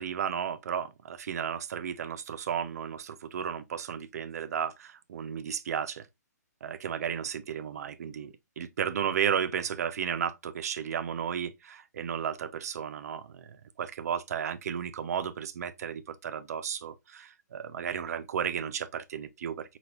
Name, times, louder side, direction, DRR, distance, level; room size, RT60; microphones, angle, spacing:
voice 1, 0.0-6.1 6.6-19.8, right 8 dB, 60° right, 0.6 m, -33 dB
4.2 x 4.0 x 2.4 m
hypercardioid pair, 135°, 9 cm